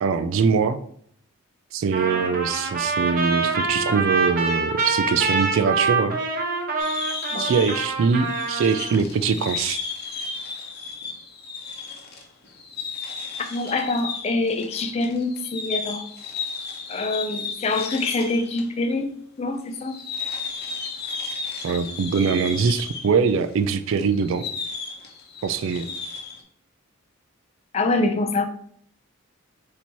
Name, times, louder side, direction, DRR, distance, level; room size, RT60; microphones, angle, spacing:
voice 1, 0.0-0.8 1.7-6.2 7.4-9.8 21.6-24.5 25.4-25.9, right 5 dB, 60° right, 11 dB, 0.3 m, -22 dB
Trumpet, 1.9-8.9, right 4 dB, 45° right, 0.8 m, -25 dB
sound 1, 6.8-18.7 18.9-19.0 19.7-26.4, left 5 dB, 45° left, 0.8 m, -34 dB
voice 2, 7.3-7.6 13.5-16.1 16.9-19.1 19.4-20.0 27.7-28.5, left 2 dB, 30° left, 7 dB, 0.3 m, -25 dB
4.2 x 2.8 x 4.4 m, 0.62 s
head